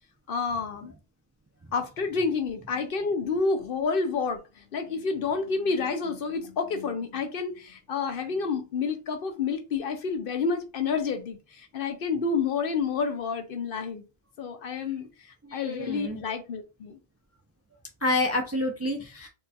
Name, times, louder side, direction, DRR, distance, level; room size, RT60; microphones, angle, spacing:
voice 1, 0.3-0.9 1.7-14.0 14.4-17.0, left 5 dB, 65° left, 0.8 m, -29 dB
voice 2, 15.4-16.2 18.0-19.3, left 2 dB, 25° right, 0.3 m, -28 dB
4.4 x 2.4 x 2.7 m
omnidirectional pair, 1.0 m